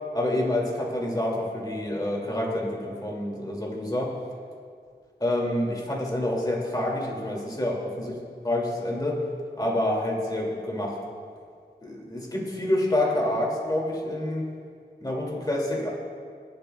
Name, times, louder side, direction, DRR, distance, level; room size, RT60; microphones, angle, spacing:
voice 1, 0.1-4.1 5.2-8.1 8.4-9.2 9.6-11.0 11.8-14.5 15.0-15.9, left 1 dB, 20° left, -2 dB, 2.4 m, -27 dB
20.5 x 7.7 x 2.3 m, 2.2 s
wide cardioid pair, 55°, 19 cm